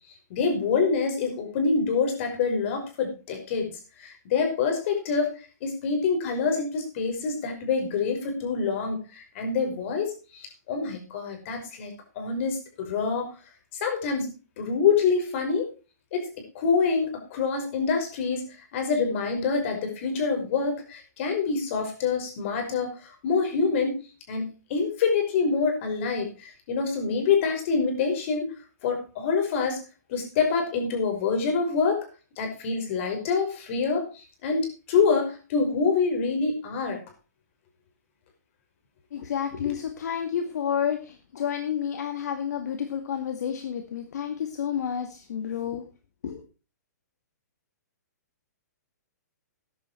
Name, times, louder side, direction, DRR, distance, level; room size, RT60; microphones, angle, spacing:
voice 1, 0.3-3.7 4.0-13.3 13.8-14.3 14.6-15.7 16.1-18.5 18.7-24.0 24.3-28.5 28.8-29.8 30.1-32.1 32.4-37.0 39.6-39.7, left 5 dB, 45° left, 4 dB, 5.6 m, -26 dB
voice 2, 39.1-45.8 46.2-46.4, left 8 dB, 70° left, 6 dB, 2.0 m, -30 dB
13.5 x 11.0 x 4.5 m, 0.32 s
hypercardioid pair, 150°, 10 cm